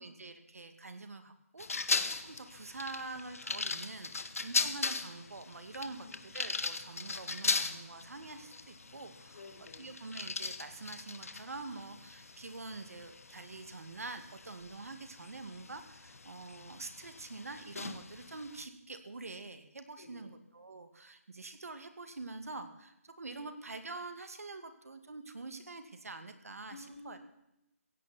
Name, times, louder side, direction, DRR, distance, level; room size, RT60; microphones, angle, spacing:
voice 1, 0.0-1.7 2.1-6.0 6.2-9.4 9.8-27.2, right 3 dB, 75° right, 8 dB, 2.3 m, -46 dB
sound 1, 1.6-18.7, left 4 dB, 70° left, 1.4 m, -39 dB
voice 2, 5.8-6.2 9.3-9.9 20.0-20.3 26.7-27.2, left 3 dB, 45° left, 3 dB, 4.2 m, -52 dB
16.5 x 16.5 x 4.5 m, 0.85 s
hypercardioid pair, 165°, 8 cm